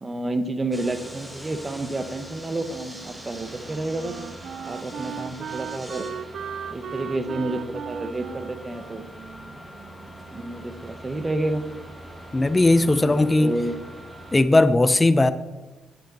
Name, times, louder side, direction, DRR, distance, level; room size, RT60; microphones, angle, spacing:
voice 1, 0.0-4.1 4.7-6.1 6.7-9.0 10.3-11.6 13.0-13.8, right 2 dB, 25° right, 10 dB, 1.0 m, -30 dB
sound 1, 0.7-14.4, right 1 dB, 10° right, 1.6 m, -42 dB
Wind instrument woodwind instrument, 3.0-10.3, right 8 dB, 65° right, 0.4 m, -38 dB
voice 2, 12.3-13.5 14.3-15.3, left 2 dB, 20° left, 12 dB, 0.6 m, -18 dB
9.5 x 8.0 x 4.1 m, 1.2 s
cardioid pair, 90°, 0 cm